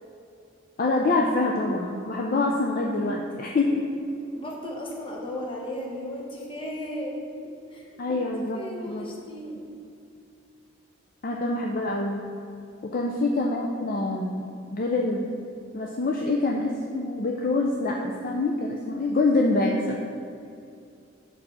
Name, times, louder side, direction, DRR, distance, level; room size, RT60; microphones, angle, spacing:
voice 1, 0.8-3.9 8.0-8.6 8.9-9.1 11.2-12.2 12.8-15.3 15.7-20.0, left 2 dB, 45° left, 0 dB, 0.4 m, -25 dB
voice 2, 4.2-7.2 7.4-8.2 8.5-9.6 13.0-13.2, left 1 dB, 25° left, -1 dB, 0.9 m, -36 dB
4.9 x 4.8 x 6.2 m, 2.5 s
head